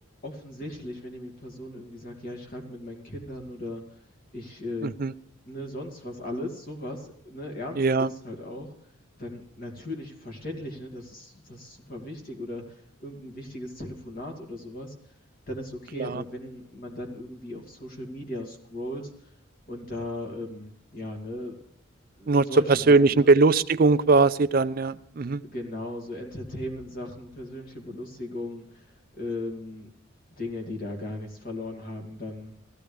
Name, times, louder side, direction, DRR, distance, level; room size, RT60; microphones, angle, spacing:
voice 1, 0.2-4.1 4.3-4.9 5.5-8.7 9.2-14.9 15.5-19.3 19.7-21.6 22.2-23.3 25.4-29.9 30.4-32.5, left 1 dB, 45° left, 2 dB, 2.4 m, -37 dB
voice 2, 4.8-5.1 7.8-8.1 16.0-16.2 22.3-25.4, right 3 dB, 45° right, 13 dB, 0.4 m, -20 dB
16.0 x 14.0 x 3.4 m, 0.71 s
head